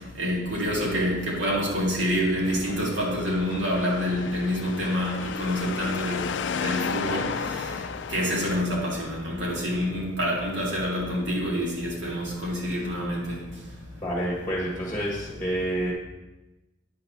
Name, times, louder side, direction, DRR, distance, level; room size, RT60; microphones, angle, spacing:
voice 1, 0.2-6.3 6.6-7.3 8.1-13.3, equal, 70° right, 2.1 m, -27 dB
sound 1, 2.5-8.6, left 6 dB, 65° left, 0.3 m, -33 dB
voice 2, 14.0-15.9, right 1 dB, 10° left, 1.3 m, -28 dB
9.1 x 4.0 x 5.6 m
head